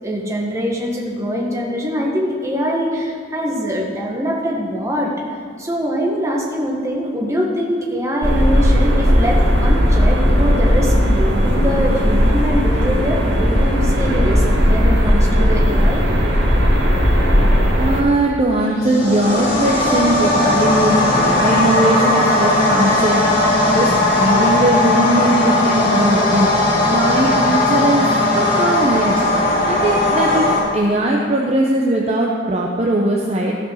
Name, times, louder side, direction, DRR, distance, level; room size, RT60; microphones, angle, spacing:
voice 1, 0.0-5.1 5.6-16.0, equal, 15° right, -2 dB, 1.5 m, -23 dB
sound 1, 8.2-18.0, equal, 70° right, 1.9 m, -15 dB
voice 2, 17.8-23.5 23.7-28.1 28.3-29.2 29.6-33.5, right 1 dB, 35° right, -1 dB, 0.7 m, -19 dB
sound 2, 18.7-30.6, left 2 dB, 45° left, 2.4 m, -17 dB
15.0 x 5.2 x 6.3 m, 2.1 s
head